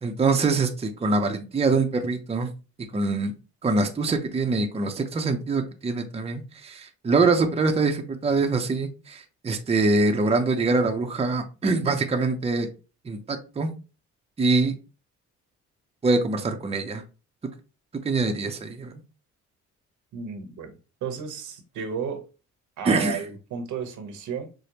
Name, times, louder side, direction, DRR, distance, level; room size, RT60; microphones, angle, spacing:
voice 1, 0.0-2.5 2.9-3.3 3.6-12.7 13.0-13.7 14.4-14.7 16.0-17.0 18.0-19.0 22.8-23.2, right 3 dB, 20° right, 0.6 m, -24 dB
voice 2, 20.1-20.7 21.0-22.2 22.8-24.5, right 6 dB, 75° right, 0.9 m, -33 dB
4.9 x 2.1 x 2.9 m
cardioid pair, 90°, 30 cm